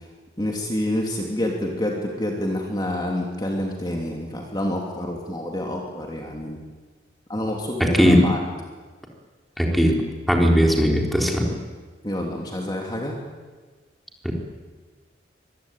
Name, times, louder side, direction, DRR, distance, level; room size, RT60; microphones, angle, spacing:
voice 1, 0.4-6.6 7.3-8.4 12.0-13.2, left 1 dB, 25° left, 0 dB, 3.0 m, -27 dB
voice 2, 7.8-8.2 9.6-10.0 10.3-11.5 14.2-14.3, equal, ahead, 0 dB, 3.9 m, -18 dB
25.0 x 22.0 x 9.3 m, 1.4 s
head